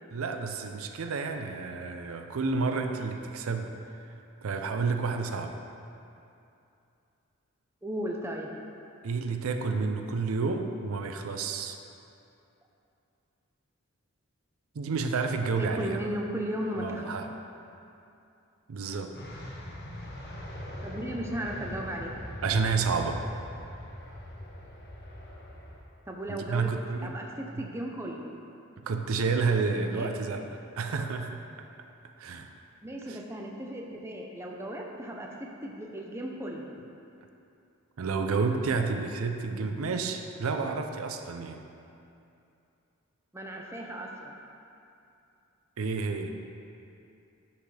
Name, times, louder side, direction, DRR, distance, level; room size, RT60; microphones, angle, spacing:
voice 1, 0.1-3.7 4.4-5.5 9.0-11.8 14.7-16.0 16.8-17.3 18.7-19.1 22.4-23.2 26.3-27.2 27.6-27.7 28.8-31.4 32.2-32.5 33.1-33.2 38.0-41.6 45.8-46.3, right 4 dB, 80° right, 6 dB, 0.5 m, -30 dB
voice 2, 7.8-8.5 15.6-17.1 20.8-22.1 26.1-26.7 27.0-28.2 29.9-30.1 32.8-36.6 43.3-44.3, right 1 dB, 10° right, 0 dB, 0.6 m, -36 dB
sound 1, 19.1-25.8, left 1 dB, 50° left, 1.1 m, -41 dB
9.9 x 5.8 x 3.3 m, 2.7 s
head